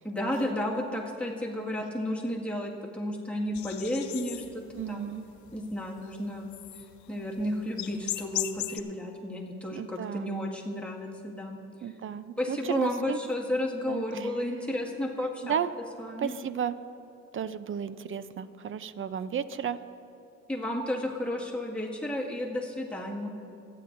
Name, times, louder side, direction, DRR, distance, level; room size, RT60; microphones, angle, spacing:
voice 1, 0.0-5.1 5.5-6.5 7.1-11.6 12.4-15.5 16.0-16.3 20.5-23.3, left 1 dB, 5° left, -3 dB, 1.9 m, -32 dB
sound 1, 3.5-8.8, left 13 dB, 70° left, 0.5 m, -37 dB
voice 2, 4.7-5.2 9.7-10.3 11.8-13.2 13.9-14.3 15.4-15.7 16.2-16.8 17.3-19.8, right 8 dB, 45° right, 13 dB, 0.6 m, -33 dB
26.5 x 9.5 x 2.6 m, 2.6 s
cardioid pair, 90°, 30 cm